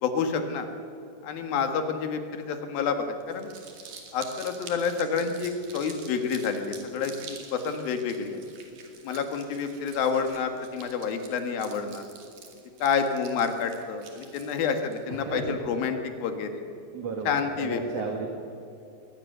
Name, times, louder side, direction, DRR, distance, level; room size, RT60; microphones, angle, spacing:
voice 1, 0.0-0.7 1.2-3.5 4.1-8.4 9.0-12.1 12.8-16.6 17.3-17.8, left 6 dB, 85° left, 6 dB, 3.5 m, -29 dB
Crumpling crinkling, 3.2-15.0, right 6 dB, 70° right, 4.0 m, -47 dB
voice 2, 15.1-15.6 16.9-17.3 17.6-18.3, right 4 dB, 50° right, 2 dB, 2.5 m, -33 dB
22.5 x 18.5 x 6.8 m, 2.8 s
omnidirectional pair, 4.1 m